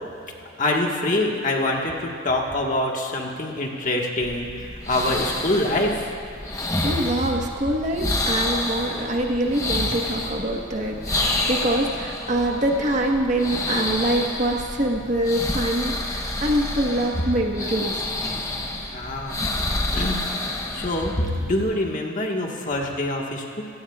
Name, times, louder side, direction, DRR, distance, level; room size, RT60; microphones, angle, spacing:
voice 1, 0.6-6.1 18.9-19.4 19.9-20.3 20.7-23.6, left 1 dB, 40° left, 0 dB, 1.6 m, -25 dB
sound 1, 4.2-21.7, left 2 dB, 15° left, 1.1 m, -29 dB
voice 2, 6.8-18.0, right 1 dB, 35° right, 1 dB, 1.3 m, -24 dB
25.5 x 16.5 x 2.4 m, 2.7 s
head